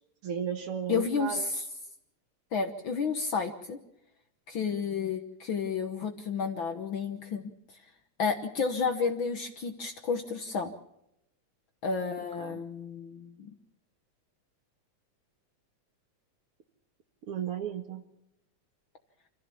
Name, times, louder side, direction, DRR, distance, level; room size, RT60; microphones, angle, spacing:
voice 1, 0.2-1.6 12.4-12.6 17.3-18.0, right 8 dB, 60° right, 7 dB, 1.9 m, -35 dB
voice 2, 0.9-1.6 2.5-3.8 4.5-7.4 8.2-10.7 11.8-13.5, left 5 dB, 55° left, 6 dB, 1.5 m, -31 dB
26.5 x 15.0 x 7.0 m, 0.81 s
omnidirectional pair, 3.3 m